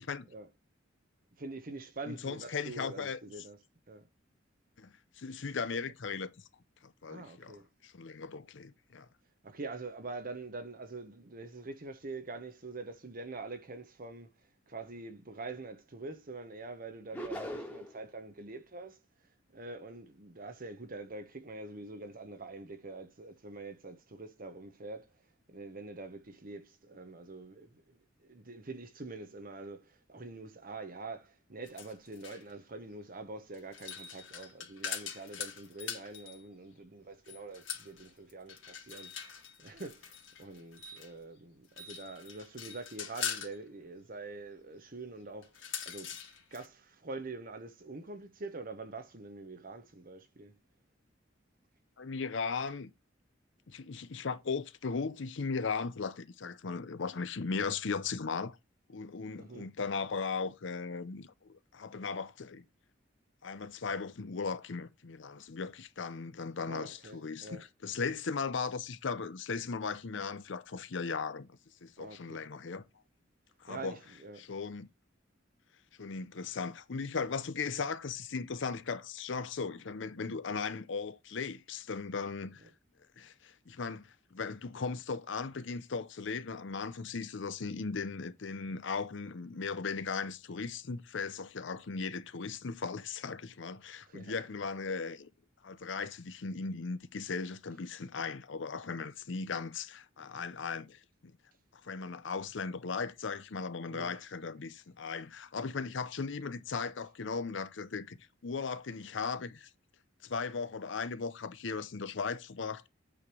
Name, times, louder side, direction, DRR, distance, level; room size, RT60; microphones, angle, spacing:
voice 1, 1.4-3.6 3.9-4.1 7.1-7.7 9.4-14.3 14.7-19.0 19.5-25.1 25.5-46.2 46.5-50.5 59.3-59.7 66.6-67.6 72.0-72.4 73.7-74.4 94.1-94.4 103.9-104.2, right 3 dB, 45° right, 1.0 m, -45 dB
voice 2, 2.1-3.2 4.8-6.3 6.8-9.1 52.0-52.9 53.7-58.6 58.9-62.6 63.4-71.5 71.8-72.8 73.6-74.0 74.4-74.9 76.0-82.6 83.2-95.3 95.6-101.3 101.8-108.2 108.4-109.7 110.2-112.9, left 5 dB, 65° left, 0.7 m, -37 dB
sound 1, 17.1-18.0, equal, 10° left, 1.3 m, -40 dB
sound 2, 31.6-32.5 33.5-36.4 37.3-41.1 41.6-43.6 45.4-46.7, left 8 dB, 90° left, 1.8 m, -42 dB
8.4 x 3.4 x 6.1 m
head